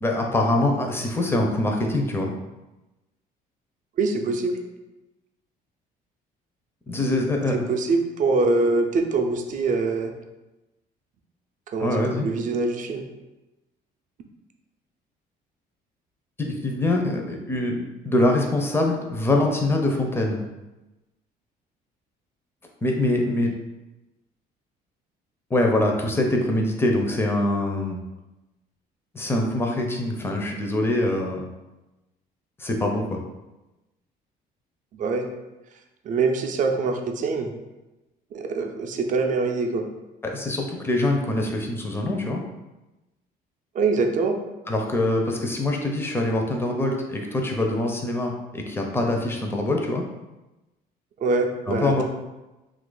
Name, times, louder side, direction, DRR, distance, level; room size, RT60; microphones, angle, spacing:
voice 1, 0.0-2.3 6.9-7.6 11.8-12.3 16.4-20.4 22.8-23.5 25.5-28.0 29.1-31.5 32.6-33.2 40.2-42.4 44.7-50.1 51.7-52.0, left 1 dB, 15° left, 1 dB, 0.5 m, -24 dB
voice 2, 4.0-4.6 7.5-10.1 11.7-13.0 34.9-35.3 36.0-37.5 38.3-39.9 43.7-44.4 51.2-52.0, right 3 dB, 50° right, 4 dB, 0.5 m, -24 dB
2.8 x 2.5 x 3.8 m, 1.0 s
cardioid pair, 110°, 17 cm